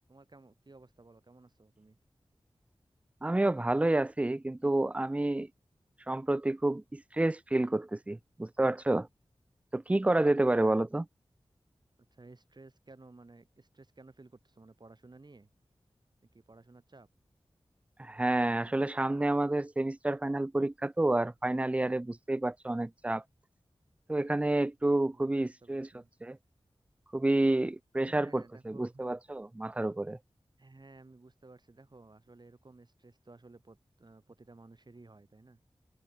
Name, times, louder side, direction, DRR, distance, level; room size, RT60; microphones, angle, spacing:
voice 1, 0.1-2.0 10.5-10.9 12.1-15.5 16.3-17.1 25.1-25.3 25.6-26.1 28.0-29.1 30.6-35.6, right 3 dB, 45° right, 3.2 m, -55 dB
voice 2, 3.2-5.5 6.1-9.1 9.7-11.0 18.0-23.2 24.1-25.9 26.2-26.4 27.1-30.2, right 2 dB, 15° right, 0.3 m, -29 dB
wide cardioid pair, 55°, 10 cm